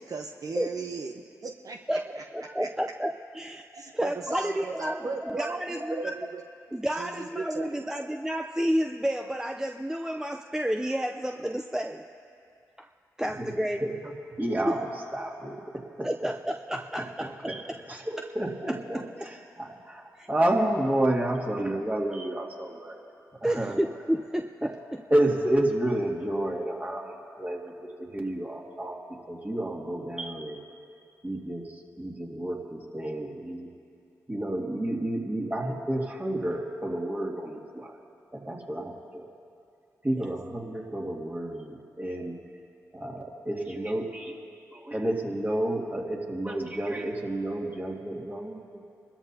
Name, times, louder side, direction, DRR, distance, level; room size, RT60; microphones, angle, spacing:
voice 1, 0.0-2.7 3.7-6.5 6.9-7.9, right 4 dB, 55° right, 4 dB, 0.7 m, -37 dB
voice 2, 1.9-3.6 3.9-6.1 6.7-12.1 12.8-12.9 13.2-13.8 14.7-14.8 16.0-17.8 20.1-20.3 22.1-22.3 23.4-24.7 30.2-30.5 40.2-40.3, equal, 10° right, 4 dB, 0.6 m, -31 dB
voice 3, 13.8-14.1 14.4-14.8 15.1-16.3 17.0-17.6 17.9-22.9 23.4-23.8 24.6-24.7 25.1-27.7 28.0-29.0 29.3-30.6 31.2-33.7 34.3-38.0 38.3-39.3 40.0-42.4 42.9-44.4 44.7-48.8, right 1 dB, 25° right, -1 dB, 2.3 m, -30 dB
24.0 x 13.0 x 2.8 m, 2.5 s
supercardioid pair, 40°, 7 cm